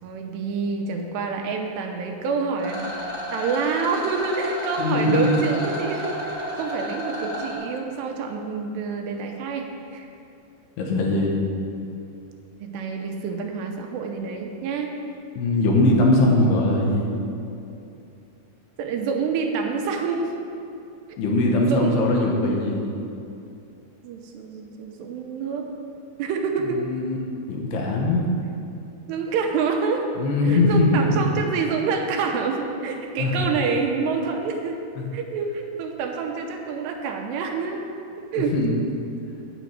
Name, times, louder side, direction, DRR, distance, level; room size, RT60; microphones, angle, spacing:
voice 1, 0.0-10.1 12.6-14.9 18.8-20.3 21.6-22.0 24.0-25.7 26.2-26.8 29.1-30.1 30.5-34.8 35.1-38.5, right 5 dB, 85° right, 3 dB, 2.9 m, -27 dB
Rattle, 2.6-7.5, equal, 25° left, 1.2 m, -32 dB
voice 2, 4.8-5.5 10.8-11.4 15.4-17.1 21.2-22.8 26.6-27.2 27.5-28.3 30.2-31.3 33.2-33.5 35.0-35.1 38.5-38.7, left 2 dB, 75° left, -1 dB, 3.1 m, -21 dB
9.3 x 5.0 x 8.0 m, 2.7 s
omnidirectional pair, 4.9 m